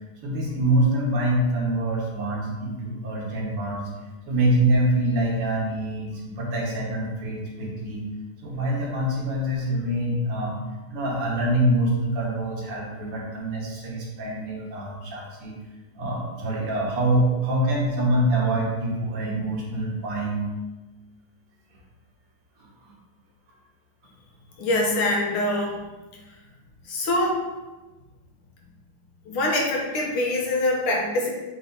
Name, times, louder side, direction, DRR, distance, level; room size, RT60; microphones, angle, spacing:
voice 1, 0.2-3.9 4.3-8.1 8.4-10.6 10.9-15.6 15.9-20.5 22.8-22.9, right 1 dB, 85° right, -3 dB, 2.3 m, -25 dB
voice 2, 24.6-25.8 26.9-27.4 29.3-31.3, left 1 dB, 75° left, -1 dB, 1.9 m, -24 dB
8.4 x 3.0 x 4.0 m, 1.1 s
omnidirectional pair, 2.4 m